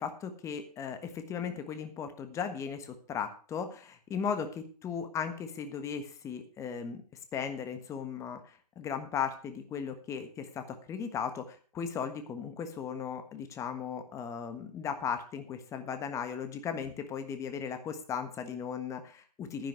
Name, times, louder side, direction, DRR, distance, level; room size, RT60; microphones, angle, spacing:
voice 1, 0.0-7.0 7.3-19.7, left 7 dB, 15° left, 8 dB, 1.4 m, -37 dB
11.0 x 10.5 x 4.9 m, 0.38 s
hypercardioid pair, 135°, 21 cm